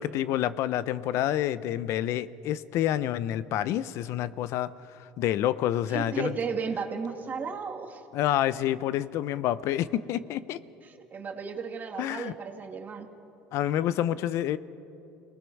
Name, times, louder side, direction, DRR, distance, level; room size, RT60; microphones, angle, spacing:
voice 1, 0.0-4.7 5.0-6.4 8.1-10.6 12.0-12.3 13.5-14.6, left 12 dB, 65° left, 16 dB, 0.6 m, -28 dB
voice 2, 5.9-8.0 10.8-13.1, right 5 dB, 35° right, 3 dB, 2.2 m, -34 dB
29.0 x 19.0 x 4.7 m, 2.8 s
supercardioid pair, 100°, 5 cm